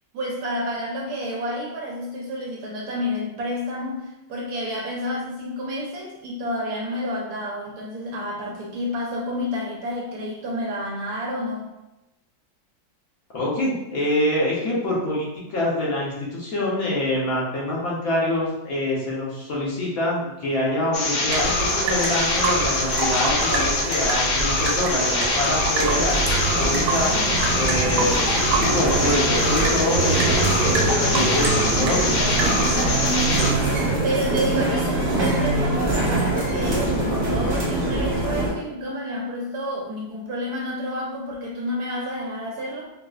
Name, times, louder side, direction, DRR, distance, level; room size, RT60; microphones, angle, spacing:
voice 1, 0.1-11.6 34.0-42.9, equal, 70° right, -2 dB, 1.0 m, -29 dB
voice 2, 13.3-26.2 26.6-27.2 27.5-32.2, left 1 dB, 60° left, -6 dB, 1.2 m, -25 dB
sound 1, 20.9-33.5, left 2 dB, 80° left, 1.3 m, -24 dB
sound 2, 21.3-32.8, right 3 dB, 90° right, 1.4 m, -27 dB
sound 3, 25.8-38.5, right 2 dB, 40° right, 0.7 m, -24 dB
4.8 x 2.1 x 2.3 m, 0.95 s
omnidirectional pair, 2.0 m